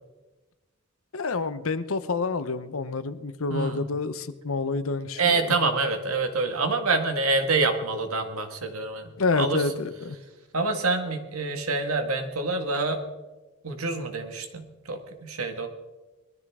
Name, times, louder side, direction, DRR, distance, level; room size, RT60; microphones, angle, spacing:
voice 1, 1.1-5.6 9.2-10.2, left 4 dB, 75° left, 13 dB, 0.8 m, -28 dB
voice 2, 3.5-3.8 5.2-9.6 10.5-13.0 13.6-15.7, right 3 dB, 90° right, 6 dB, 1.8 m, -26 dB
21.0 x 13.0 x 3.7 m, 1.2 s
head